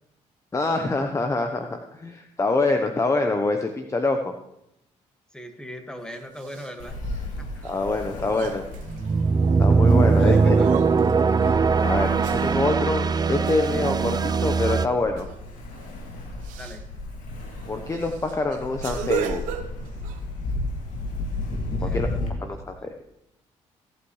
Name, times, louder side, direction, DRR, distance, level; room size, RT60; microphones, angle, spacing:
voice 1, 0.5-4.3 7.6-8.7 9.6-10.6 11.8-15.3 17.7-19.4 21.8-22.1 22.4-22.9, left 2 dB, 25° left, 5 dB, 1.0 m, -25 dB
voice 2, 5.3-7.0 7.4-7.6 10.2-10.8 16.5-16.8 21.8-22.5, equal, 5° left, 5 dB, 1.8 m, -40 dB
sound 1, 6.1-6.7 7.6-7.8 8.2-9.6 10.2-11.3 12.2-12.9 13.5-13.8 15.2-15.4 15.7-15.9 16.4-16.8 17.4-17.5 17.9-20.2, right 10 dB, 85° right, 0.9 m, -35 dB
Ocean, 6.8-22.3, left 2 dB, 75° left, 2.4 m, -34 dB
sound 2, 8.9-14.9, right 4 dB, 30° right, 0.5 m, -20 dB
17.0 x 8.7 x 3.2 m, 0.82 s
supercardioid pair, 75°, 13 cm